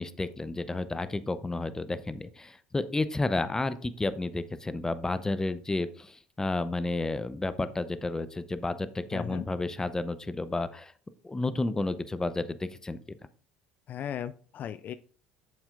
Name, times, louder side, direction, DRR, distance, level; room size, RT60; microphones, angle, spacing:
voice 1, 0.0-10.9 11.2-13.0, left 2 dB, 15° left, 13 dB, 0.7 m, -31 dB
voice 2, 9.1-9.5 13.9-14.9, left 9 dB, 50° left, 13 dB, 0.4 m, -36 dB
8.8 x 7.1 x 2.5 m, 0.44 s
hypercardioid pair, 70°, 4 cm